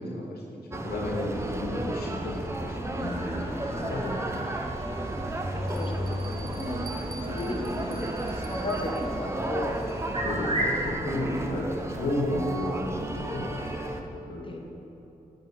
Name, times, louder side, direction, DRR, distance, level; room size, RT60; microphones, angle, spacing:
voice 1, 0.0-4.5 10.2-13.5 14.3-14.6, left 1 dB, 90° left, -2 dB, 1.0 m, -32 dB
sound 1, 0.7-14.0, right 1 dB, 15° right, 0.7 m, -33 dB
voice 2, 2.1-2.6 5.5-9.8 14.4-14.6, left 2 dB, 35° left, 1 dB, 0.9 m, -36 dB
sound 2, 2.9-10.9, right 1 dB, 40° right, 1.3 m, -37 dB
Bell, 5.7-10.2, right 3 dB, 65° right, 0.7 m, -48 dB
8.1 x 3.8 x 4.6 m, 3.0 s
cardioid pair, 50°, 16 cm